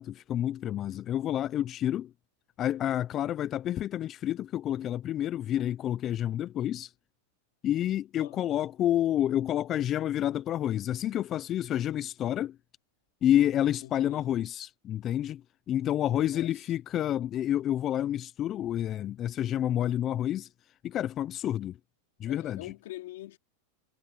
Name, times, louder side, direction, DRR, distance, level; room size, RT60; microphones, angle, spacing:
voice 1, 0.0-2.1 2.6-6.9 7.6-12.6 13.2-20.5 20.8-21.8 22.2-22.6, left 11 dB, 30° left, 0.3 m, -29 dB
voice 2, 8.2-8.6 13.8-14.3 16.0-16.6 22.3-23.4, left 16 dB, 70° left, 2.4 m, -45 dB
supercardioid pair, 150°, 0 cm